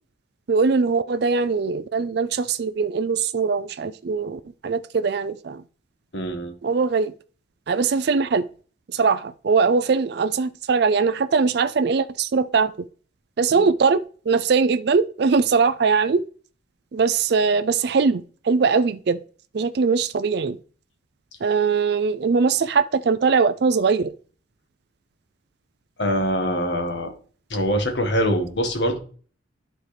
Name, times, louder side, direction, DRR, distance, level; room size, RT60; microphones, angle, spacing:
voice 1, 0.5-5.6 6.6-7.1 7.7-8.4 8.9-12.7 13.4-14.0 14.3-16.2 16.9-19.2 19.5-20.6 21.4-24.1, right 5 dB, 55° right, 0.4 m, -21 dB
voice 2, 6.1-6.5 13.5-13.7 26.0-27.1 27.5-29.0, equal, 65° left, 1.6 m, -24 dB
11.0 x 4.5 x 3.3 m
head